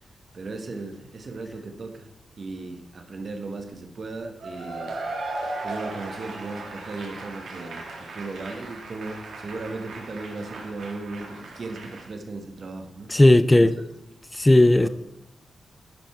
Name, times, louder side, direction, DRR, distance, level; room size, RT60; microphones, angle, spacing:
voice 1, 0.3-2.1 2.4-5.0 5.6-13.1 13.6-13.7 14.8-14.9, right 3 dB, 55° right, 1.3 m, -36 dB
Cheering / Applause / Crowd, 4.4-12.1, right 2 dB, 90° right, 1.7 m, -37 dB
voice 2, 13.1-13.8 14.4-14.9, left 1 dB, 15° left, 0.4 m, -15 dB
11.0 x 5.3 x 4.4 m
cardioid pair, 70°, 0 cm